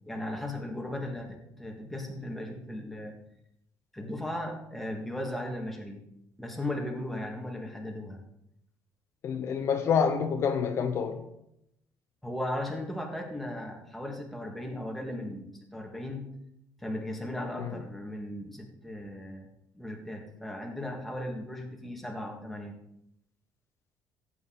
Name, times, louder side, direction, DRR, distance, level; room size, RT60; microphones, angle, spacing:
voice 1, 0.1-3.2 3.9-6.0 6.4-8.2 12.2-16.3 16.8-19.5 19.7-22.8, left 1 dB, ahead, 0 dB, 1.8 m, -37 dB
voice 2, 9.2-11.3 17.6-17.7, left 6 dB, 45° left, 6 dB, 0.8 m, -27 dB
16.0 x 8.2 x 4.0 m, 0.77 s
cardioid pair, 165°, 7 cm